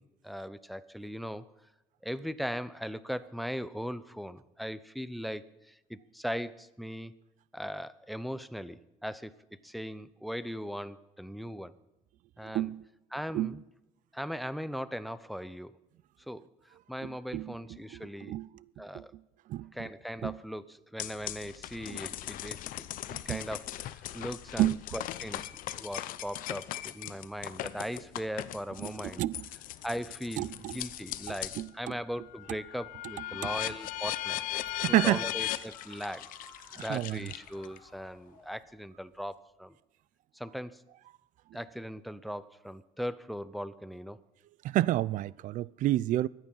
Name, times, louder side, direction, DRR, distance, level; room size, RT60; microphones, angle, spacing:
voice 1, 0.0-1.5 2.0-7.1 7.5-9.3 9.6-11.7 12.4-12.7 13.1-13.6 14.1-15.7 16.3-16.5 16.9-18.4 18.8-19.1 19.7-22.6 23.1-29.2 29.8-34.4 34.9-36.3 36.8-39.8 40.3-40.8 41.5-44.2, equal, ahead, 0.7 m, -39 dB
voice 2, 12.5-12.8 13.3-13.5 17.0-17.5 18.3-18.5 18.9-19.0 19.5-19.7 20.2-20.3 23.1-23.4 24.6-24.8 28.8-28.9 29.2-29.5 30.4-30.8 31.6-31.9 34.8-35.2 36.9-37.2 44.7-46.3, right 15 dB, 60° right, 0.4 m, -29 dB
sound 1, 21.0-31.7 32.1-37.8, left 14 dB, 70° left, 0.7 m, -38 dB
sound 2, 32.2-39.4, left 3 dB, 20° left, 5.7 m, -57 dB
23.5 x 9.0 x 5.5 m
cardioid pair, 120°, 15 cm